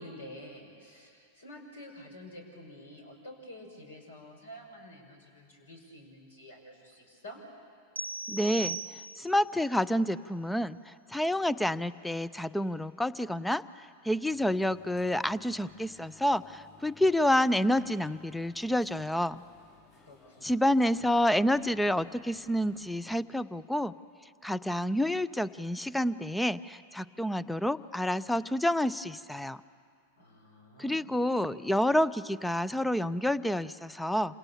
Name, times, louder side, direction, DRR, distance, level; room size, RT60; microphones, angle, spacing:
voice 1, 0.0-7.4 20.0-20.5 30.2-31.2, left 1 dB, 70° left, 2 dB, 5.9 m, -49 dB
sound 1, 8.0-9.5, right 3 dB, 80° right, 0.7 m, -38 dB
voice 2, 8.3-19.4 20.4-23.9 24.4-29.6 30.8-34.4, left 1 dB, 5° left, 18 dB, 0.6 m, -29 dB
sound 2, 14.3-23.0, left 5 dB, 45° left, 5.9 m, -58 dB
27.5 x 27.5 x 7.0 m, 2.3 s
figure-of-eight pair, 90°, 0 cm